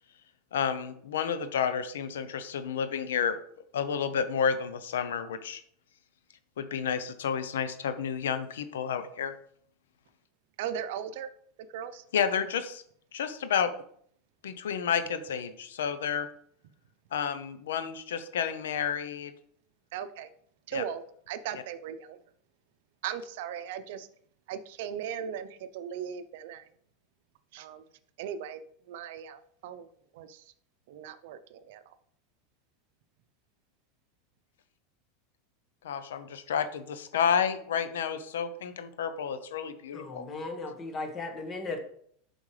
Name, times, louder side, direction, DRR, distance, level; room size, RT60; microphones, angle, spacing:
voice 1, 0.5-3.4 3.7-5.6 6.6-9.3 12.1-12.8 13.1-13.7 14.4-16.3 17.1-19.3 20.7-20.8 35.8-40.2, left 7 dB, 85° left, 11 dB, 0.6 m, -30 dB
voice 2, 10.6-11.3 11.7-12.0 19.9-20.3 20.7-22.2 23.0-24.1 24.5-26.6 27.5-27.8 28.2-28.6 28.9-29.9 30.1-30.4 30.9-32.0, right 9 dB, 70° right, 12 dB, 0.6 m, -38 dB
voice 3, 39.9-41.8, left 3 dB, 30° left, 4 dB, 1.6 m, -36 dB
7.1 x 5.3 x 3.3 m, 0.63 s
hypercardioid pair, 110°, 0 cm